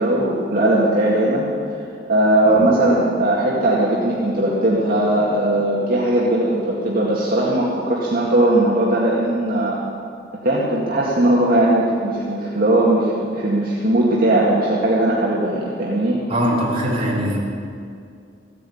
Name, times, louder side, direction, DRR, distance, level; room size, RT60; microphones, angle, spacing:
voice 1, 0.0-1.5 2.1-9.8 10.4-16.2, right 1 dB, 55° right, -6 dB, 2.1 m, -18 dB
voice 2, 16.3-17.4, equal, 30° right, -6 dB, 4.1 m, -21 dB
15.5 x 9.8 x 8.6 m, 2.4 s
head